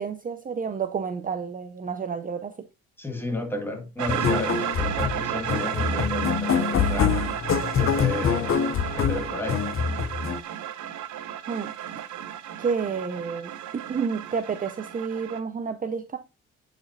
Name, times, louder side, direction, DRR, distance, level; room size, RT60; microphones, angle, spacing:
voice 1, 0.0-2.7 11.5-11.8 12.6-16.2, right 6 dB, 30° right, 0.6 m, -30 dB
voice 2, 3.0-7.5 7.8-9.6, left 1 dB, 5° left, 1.6 m, -33 dB
sound 1, 4.0-15.4, right 10 dB, 70° right, 0.8 m, -33 dB
sound 2, 4.1-10.4, left 7 dB, 45° left, 0.7 m, -25 dB
8.2 x 5.0 x 2.7 m
cardioid pair, 90°, 30 cm